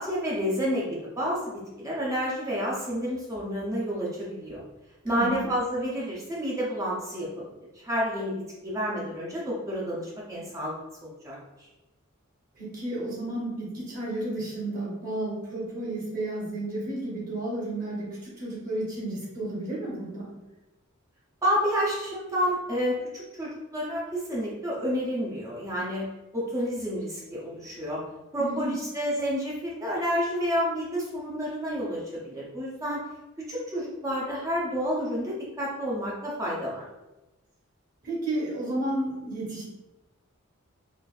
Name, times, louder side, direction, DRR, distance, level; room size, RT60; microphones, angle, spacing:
voice 1, 0.0-4.6 5.0-7.4 7.8-8.3 8.6-11.4 21.4-26.0 26.3-28.0 28.3-33.0 33.5-36.9, equal, 15° right, -5 dB, 0.5 m, -30 dB
voice 2, 5.1-5.5 12.5-20.3 28.4-28.8 38.0-39.6, right 1 dB, 40° right, -5 dB, 1.0 m, -32 dB
3.9 x 2.4 x 2.4 m, 1.0 s
head